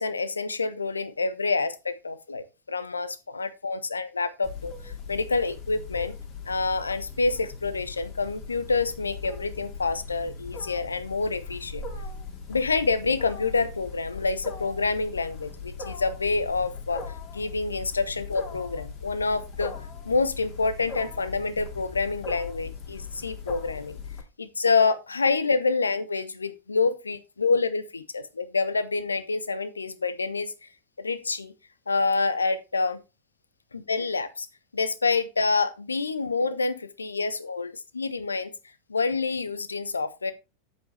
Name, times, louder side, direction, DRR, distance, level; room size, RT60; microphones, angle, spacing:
voice 1, 0.0-6.1 6.5-11.8 12.5-17.0 17.3-19.7 20.0-24.0 24.4-30.5 31.0-31.5 31.9-33.0 33.7-34.5 34.7-38.5 38.9-40.3, left 4 dB, 75° left, 11 dB, 1.0 m, -27 dB
Wild animals, 4.4-24.2, left 5 dB, 30° left, 2.3 m, -39 dB
8.3 x 8.1 x 3.3 m, 0.26 s
figure-of-eight pair, 90°, 0 cm